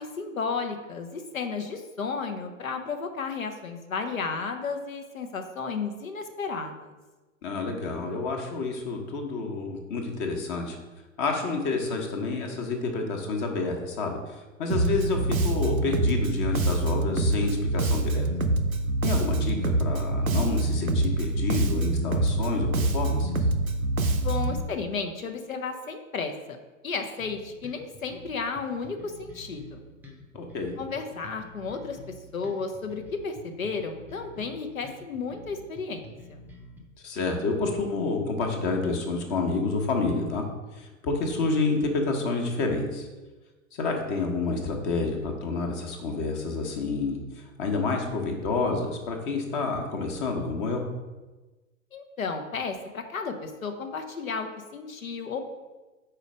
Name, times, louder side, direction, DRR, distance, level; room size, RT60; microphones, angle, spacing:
voice 1, 0.0-6.9 24.1-26.3 26.8-29.8 30.8-32.0 32.3-36.4 51.9-55.5, left 4 dB, 75° left, 6 dB, 0.9 m, -33 dB
voice 2, 7.4-10.8 11.2-18.3 19.0-23.5 30.3-30.8 37.0-40.4 40.7-43.1 43.7-50.8, left 3 dB, 35° left, 3 dB, 1.1 m, -29 dB
Bass guitar, 14.7-24.6, right 2 dB, 85° right, 0.6 m, -25 dB
sound 1, 27.2-36.8, equal, 5° right, 0.6 m, -48 dB
4.9 x 4.4 x 5.0 m, 1.2 s
figure-of-eight pair, 100°, 41 cm